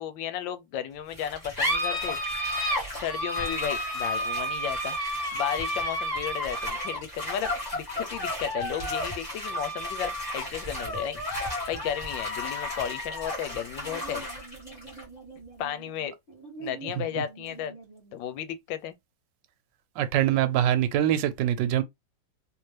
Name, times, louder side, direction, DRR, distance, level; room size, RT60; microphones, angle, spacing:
voice 1, 0.0-2.2 3.0-5.0 5.3-11.2 11.7-14.2 15.6-16.1 16.6-17.7 18.1-18.9, left 9 dB, 90° left, 1.4 m, -34 dB
sound 1, 1.1-18.1, equal, 25° left, 1.6 m, -32 dB
voice 2, 20.0-21.8, right 11 dB, 80° right, 1.3 m, -24 dB
3.6 x 2.8 x 3.2 m
omnidirectional pair, 2.0 m